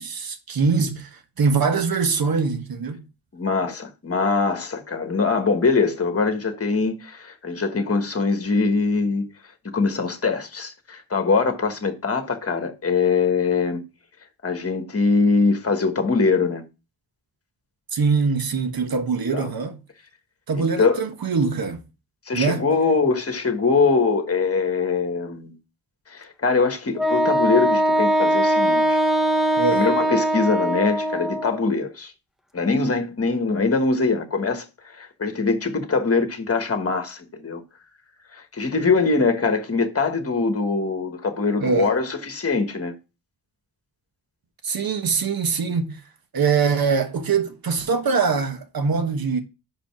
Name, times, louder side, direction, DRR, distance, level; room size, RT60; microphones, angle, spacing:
voice 1, 0.0-3.0 17.9-19.8 20.5-21.8 22.3-22.6 29.6-29.9 41.6-41.9 44.6-46.0 46.3-49.4, right 5 dB, 60° right, 1.3 m, -23 dB
voice 2, 3.3-9.3 9.6-13.8 14.4-16.6 19.3-19.5 20.5-21.0 22.3-25.5 26.1-29.0 29.7-32.1 32.5-37.6 38.3-42.9, left 4 dB, 35° left, 1.4 m, -22 dB
Wind instrument woodwind instrument, 27.0-31.6, right 1 dB, ahead, 0.6 m, -21 dB
5.6 x 5.1 x 5.8 m
wide cardioid pair, 110°, 41 cm